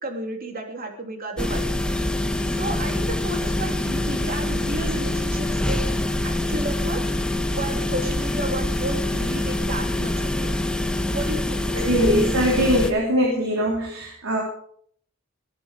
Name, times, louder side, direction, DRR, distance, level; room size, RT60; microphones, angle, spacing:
voice 1, 0.0-1.7 2.5-5.8 6.2-7.0 7.5-10.6 11.1-11.9, right 1 dB, 45° right, 3 dB, 3.2 m, -32 dB
sound 1, 1.4-12.9, left 1 dB, 5° left, 1.1 m, -25 dB
voice 2, 11.7-14.4, equal, 85° right, -1 dB, 3.5 m, -21 dB
20.5 x 9.2 x 5.0 m, 0.62 s
head